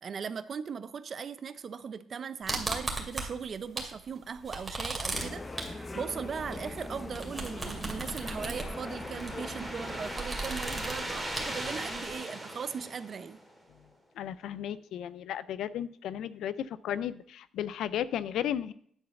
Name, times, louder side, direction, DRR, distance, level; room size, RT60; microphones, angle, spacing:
voice 1, 0.0-13.4, right 6 dB, 50° right, 12 dB, 0.6 m, -39 dB
sound 1, 2.5-4.0 4.3-12.1, right 2 dB, 15° right, 2.3 m, -37 dB
sound 2, 5.1-10.1, left 2 dB, 25° left, 0.7 m, -41 dB
sound 3, 7.3-13.7, equal, ahead, 2.2 m, -40 dB
voice 2, 14.2-18.7, left 10 dB, 80° left, 16 dB, 0.4 m, -34 dB
9.8 x 4.0 x 6.9 m, 0.62 s
cardioid pair, 90°, 0 cm